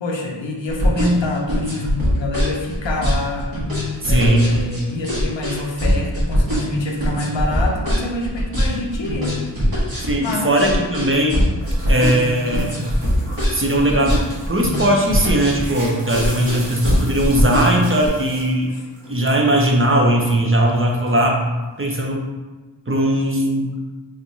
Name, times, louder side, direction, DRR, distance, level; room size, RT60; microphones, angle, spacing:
voice 1, 0.0-3.5 4.0-9.4 10.2-10.9 16.2-16.6 18.7-18.9, left 2 dB, 75° left, 0 dB, 0.7 m, -26 dB
sound 1, 0.7-18.1, equal, 50° right, 1.3 m, -21 dB
voice 2, 4.0-4.6 10.0-11.4 11.9-12.8 13.5-18.7 19.1-21.4 21.8-22.3 22.9-23.7, right 1 dB, 30° right, -1 dB, 0.6 m, -19 dB
sound 2, 11.6-19.4 19.7-21.4, right 1 dB, 70° right, 1.1 m, -39 dB
3.5 x 3.2 x 2.7 m, 1.2 s
wide cardioid pair, 45°, 45 cm